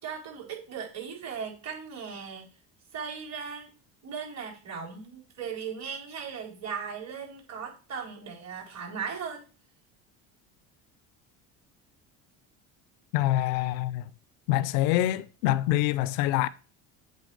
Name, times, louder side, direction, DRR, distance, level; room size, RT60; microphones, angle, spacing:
voice 1, 0.0-2.5 2.9-3.7 4.0-9.4, right 6 dB, 45° right, 4.6 m, -37 dB
voice 2, 13.1-14.1 14.5-16.5, left 14 dB, 85° left, 0.7 m, -25 dB
8.1 x 4.2 x 6.4 m
supercardioid pair, 100°, 37 cm